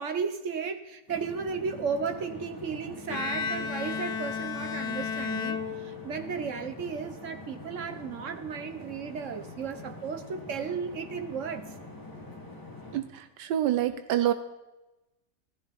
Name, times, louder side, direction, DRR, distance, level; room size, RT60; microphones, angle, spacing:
voice 1, 0.0-11.7, right 6 dB, 50° right, 8 dB, 1.2 m, -34 dB
sound 1, 1.1-13.0, left 2 dB, 10° left, 2.0 m, -45 dB
Bowed string instrument, 3.1-6.4, left 6 dB, 70° left, 1.3 m, -33 dB
voice 2, 12.9-14.3, right 12 dB, 85° right, 11 dB, 1.3 m, -27 dB
15.0 x 13.5 x 4.2 m, 1.0 s
omnidirectional pair, 1.8 m